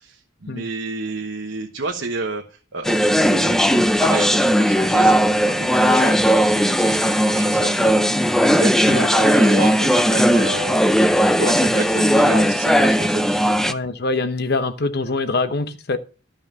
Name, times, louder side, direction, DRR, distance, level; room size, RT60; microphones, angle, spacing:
voice 1, 0.0-5.2 5.4-10.8 11.4-13.6, right 3 dB, 70° right, 1.2 m, -30 dB
sound 1, 2.8-13.7, equal, ahead, 0.5 m, -17 dB
voice 2, 13.7-16.0, left 3 dB, 55° left, 0.9 m, -24 dB
12.5 x 5.6 x 5.3 m
head